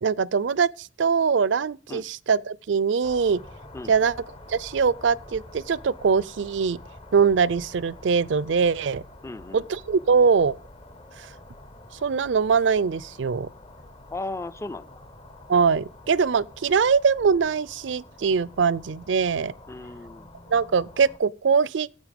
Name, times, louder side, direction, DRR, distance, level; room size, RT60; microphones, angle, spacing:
voice 1, 0.0-3.4 3.9-4.1 4.5-6.8 7.1-9.0 9.5-10.6 12.0-13.5 15.5-19.5 20.5-21.9, right 5 dB, 65° right, 0.4 m, -22 dB
sound 1, 3.0-21.2, left 1 dB, 30° left, 0.9 m, -47 dB
voice 2, 9.2-9.7 14.1-14.9 19.7-20.3, left 2 dB, 15° left, 0.5 m, -35 dB
9.8 x 8.0 x 5.2 m
head